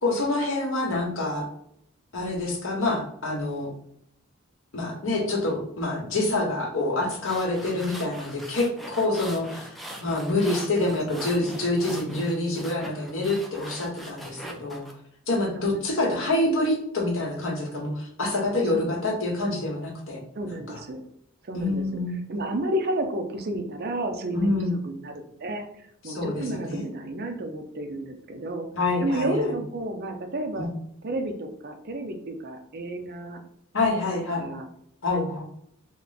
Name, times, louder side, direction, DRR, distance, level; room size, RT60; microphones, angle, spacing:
voice 1, 0.0-1.4 2.1-3.7 4.7-9.7 10.0-14.9 15.3-20.2 20.7-20.8 21.5-22.2 24.3-24.7 26.0-26.8 28.7-29.5 30.6-30.7 33.7-34.5 35.0-35.4, left 2 dB, 65° left, -1 dB, 1.1 m, -26 dB
sound 1, 7.0-14.9, equal, ahead, 0.4 m, -41 dB
voice 2, 10.8-11.3 15.5-16.2 18.7-18.9 20.3-21.0 21.4-21.8 22.3-25.7 26.0-28.7 29.0-30.7 31.0-33.4 34.4-34.7, right 1 dB, 50° right, 5 dB, 0.5 m, -31 dB
3.1 x 2.1 x 4.0 m, 0.72 s
head